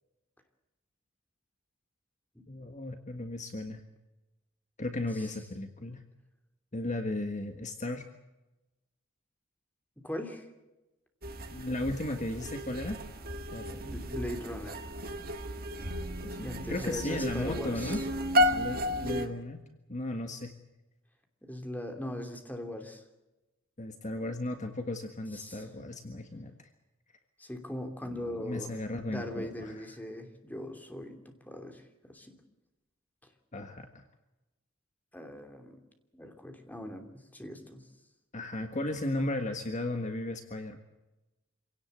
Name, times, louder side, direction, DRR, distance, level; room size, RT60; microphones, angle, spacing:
voice 1, 2.5-3.8 4.8-6.0 6.7-8.0 11.5-13.0 13.5-14.0 16.2-18.0 18.5-19.6 19.9-20.5 23.8-26.7 28.0-29.8 33.5-34.0 38.3-40.8, left 1 dB, 35° left, 6 dB, 1.6 m, -35 dB
voice 2, 10.0-10.5 13.8-14.9 16.4-18.1 21.4-23.0 25.3-25.7 27.4-28.7 29.1-32.4 35.1-35.8 36.1-37.8, left 1 dB, 10° left, 4 dB, 2.9 m, -40 dB
sound 1, 11.2-19.3, left 1 dB, 50° right, 1.9 m, -33 dB
26.0 x 17.5 x 8.0 m, 1.0 s
head